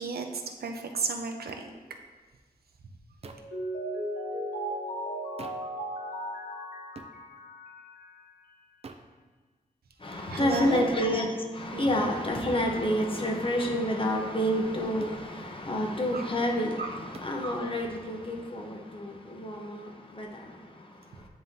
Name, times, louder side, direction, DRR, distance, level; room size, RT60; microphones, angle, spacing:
voice 1, 0.0-1.7 10.3-10.9 11.7-11.9 16.1-16.3 16.8-16.9, right 4 dB, 90° right, 4 dB, 0.6 m, -33 dB
sound 1, 1.5-1.6 3.2-3.6 5.4-5.7 7.0-7.2 8.8-9.1 10.8-11.0 13.0-13.2 15.0-15.3 17.1-17.4, right 4 dB, 40° right, 0.4 m, -46 dB
Mallet percussion, 3.3-8.2, right 1 dB, 70° left, 0.8 m, -36 dB
voice 2, 10.0-11.3 11.5-19.9 20.2-20.4, equal, 35° left, 1 dB, 0.8 m, -29 dB
9.5 x 3.7 x 2.7 m, 1.3 s
wide cardioid pair, 110°, 16 cm